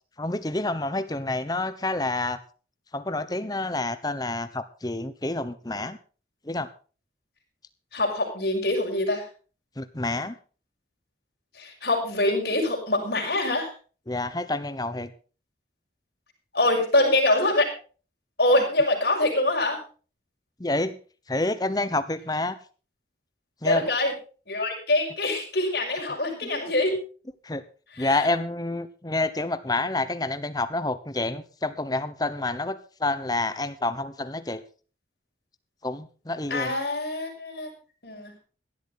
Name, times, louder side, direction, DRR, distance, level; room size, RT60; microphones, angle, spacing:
voice 1, 0.2-2.4 2.9-6.0 6.4-6.7 9.8-10.3 14.1-15.1 20.6-21.0 21.3-22.5 23.6-23.9 26.4-26.6 27.4-27.6 28.0-34.6 35.8-36.7, left 2 dB, 20° left, 13 dB, 1.0 m, -28 dB
voice 2, 7.9-9.2 11.5-13.7 16.5-17.7 18.4-19.8 23.6-24.1 24.5-27.0 27.9-28.3 36.5-37.7 38.0-38.3, left 2 dB, 60° left, 0 dB, 5.9 m, -24 dB
17.5 x 12.0 x 4.0 m, 0.37 s
head